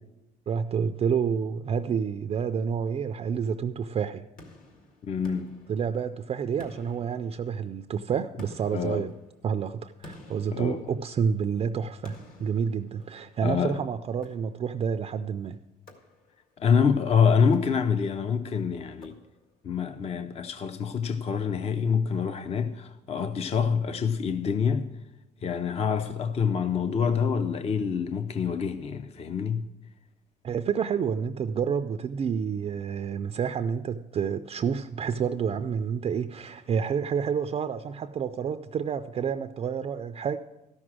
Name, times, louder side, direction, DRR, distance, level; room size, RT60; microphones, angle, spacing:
voice 1, 0.5-4.3 5.7-9.1 9.4-15.6 30.4-40.4, right 7 dB, 35° right, 0.4 m, -29 dB
sound 1, 4.4-6.2 6.6-7.8 8.4-11.4 12.0-13.5 14.2-14.9 15.9-16.6 17.4-18.2 19.0-19.7, left 2 dB, 55° left, 1.9 m, -51 dB
voice 2, 5.0-5.5 8.7-9.0 10.5-10.8 13.4-13.8 16.6-19.2 19.6-24.8 25.4-29.6, left 6 dB, 40° left, 0.6 m, -26 dB
13.0 x 6.1 x 6.2 m
cardioid pair, 110°, 17 cm